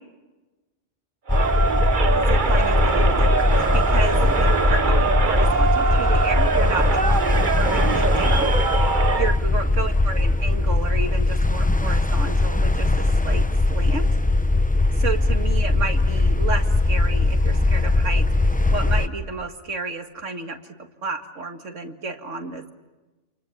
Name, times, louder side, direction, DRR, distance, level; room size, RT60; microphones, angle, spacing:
sound 1, 1.3-19.1, left 2 dB, 10° left, 0.7 m, -20 dB
Crowd, 1.3-9.4, right 5 dB, 45° right, 1.2 m, -23 dB
voice 1, 1.9-8.5 9.2-14.1 14.9-18.2 18.7-20.7 21.0-22.7, right 4 dB, 90° right, 6 dB, 2.3 m, -31 dB
29.5 x 28.0 x 7.3 m, 1.1 s
omnidirectional pair, 1.2 m